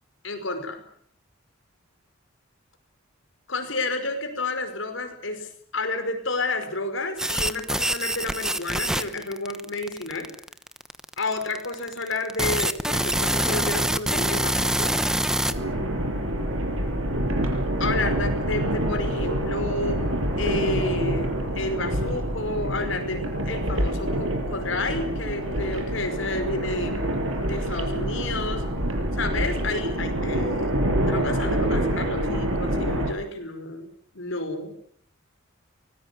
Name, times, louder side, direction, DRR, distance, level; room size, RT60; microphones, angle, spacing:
voice 1, 0.2-0.8 3.5-10.3 11.2-15.0 17.8-20.0 20.4-27.0 27.5-28.7 29.1-30.7 31.1-33.9 34.1-34.7, left 2 dB, 65° left, 7 dB, 5.4 m, -30 dB
sound 1, 7.2-15.5, right 1 dB, 5° right, 1.0 m, -25 dB
sound 2, 15.5-33.1, right 1 dB, 80° right, 7.2 m, -26 dB
24.0 x 19.5 x 8.6 m, 0.65 s
head